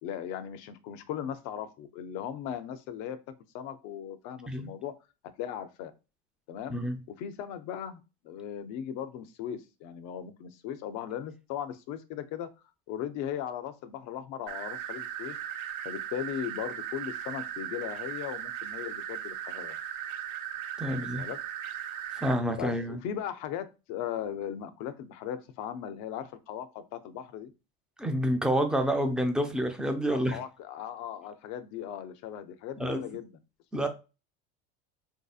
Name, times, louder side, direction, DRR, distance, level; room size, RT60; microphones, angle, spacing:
voice 1, 0.0-3.2 3.5-4.9 5.4-5.9 6.5-6.8 7.2-12.5 12.9-15.4 15.8-19.8 20.9-21.4 21.9-22.0 22.6-27.5 30.0-33.3 33.8-33.9, left 9 dB, 60° left, 0.7 m, -38 dB
sound 1, 14.5-22.3, right 10 dB, 75° right, 1.0 m, -37 dB
voice 2, 20.8-21.3 22.2-23.0 28.0-30.4 32.8-33.0 33.7-33.9, equal, 5° right, 0.5 m, -28 dB
4.3 x 2.7 x 2.4 m
supercardioid pair, 115°, 31 cm